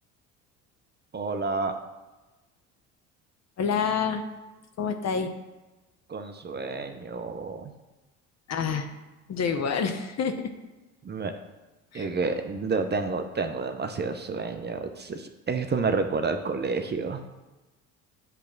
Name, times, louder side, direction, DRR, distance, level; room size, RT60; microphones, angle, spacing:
voice 1, 1.1-1.8 6.1-7.7 11.0-11.3 11.9-17.2, right 4 dB, 25° right, 7 dB, 0.7 m, -29 dB
voice 2, 3.6-4.2 4.8-5.3 8.5-8.9 9.3-10.5 11.9-12.1, left 6 dB, 45° left, 7 dB, 0.9 m, -27 dB
8.3 x 3.4 x 5.9 m, 1.1 s
hypercardioid pair, 65°, 38 cm